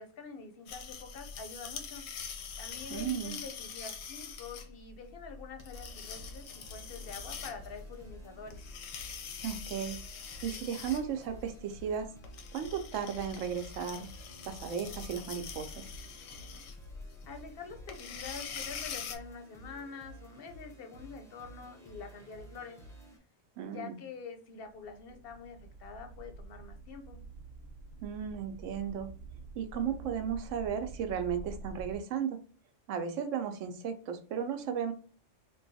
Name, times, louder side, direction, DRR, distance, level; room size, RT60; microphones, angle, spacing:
voice 1, 0.0-2.0 2.6-8.6 17.3-22.8 23.6-27.2, left 5 dB, 60° left, 6 dB, 0.7 m, -46 dB
sound 1, 0.7-19.2, left 6 dB, 90° left, 1.0 m, -44 dB
voice 2, 2.9-3.4 9.4-10.0 10.4-12.1 12.5-14.1 14.5-15.8 23.6-24.0 28.0-29.1 29.6-32.4 32.9-34.9, right 8 dB, 85° right, 8 dB, 0.9 m, -35 dB
sound 2, 5.7-23.2, right 1 dB, 5° left, 0.3 m, -53 dB
sound 3, 24.7-32.0, right 3 dB, 35° right, 0.9 m, -47 dB
3.7 x 2.3 x 2.6 m, 0.39 s
omnidirectional pair, 1.3 m